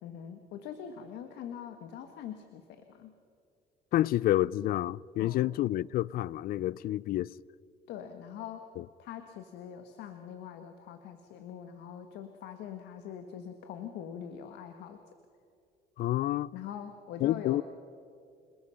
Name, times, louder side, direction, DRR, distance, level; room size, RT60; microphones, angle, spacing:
voice 1, 0.0-3.1 5.2-5.5 7.9-8.7 9.0-15.1 16.5-17.6, left 8 dB, 85° left, 1.4 m, -43 dB
voice 2, 3.9-7.3 8.8-8.9 16.0-16.5 17.2-17.6, left 14 dB, 60° left, 0.4 m, -29 dB
27.5 x 20.5 x 5.7 m
cardioid pair, 110°, 17 cm